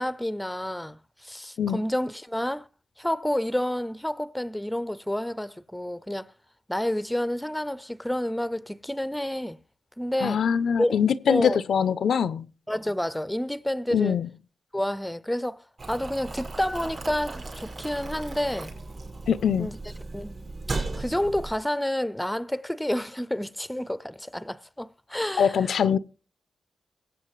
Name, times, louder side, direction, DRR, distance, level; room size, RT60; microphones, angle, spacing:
voice 1, 0.0-2.7 3.0-6.3 6.7-9.6 10.0-10.4 10.8-11.0 11.3-11.6 12.7-14.2 14.7-18.7 19.6-19.8 20.1-20.4 21.0-25.6, left 1 dB, 5° left, 0.5 m, -29 dB
voice 2, 10.2-12.5 13.9-14.3 19.3-19.7 25.4-26.0, left 7 dB, 80° left, 0.5 m, -23 dB
Boiling, 15.8-21.6, right 3 dB, 45° right, 5.5 m, -36 dB
23.0 x 8.1 x 3.1 m
cardioid pair, 70°, 0 cm